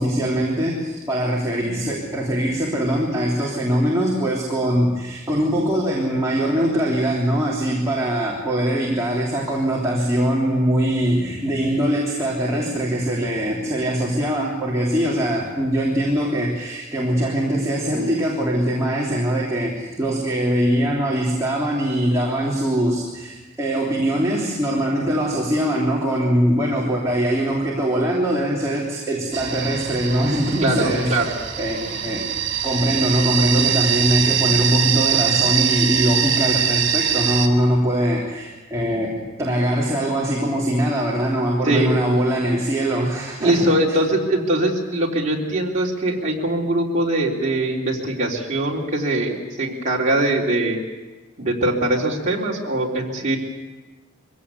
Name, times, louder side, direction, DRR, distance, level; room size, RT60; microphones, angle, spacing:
voice 1, 0.0-32.3 32.6-44.0, equal, 15° right, -4 dB, 3.3 m, -22 dB
sound 1, 29.3-37.5, right 9 dB, 60° right, 2.3 m, -23 dB
voice 2, 30.6-31.3 41.6-42.0 43.4-50.8 51.4-53.4, right 1 dB, 35° right, -3 dB, 3.7 m, -22 dB
23.0 x 17.0 x 8.4 m, 1.2 s
head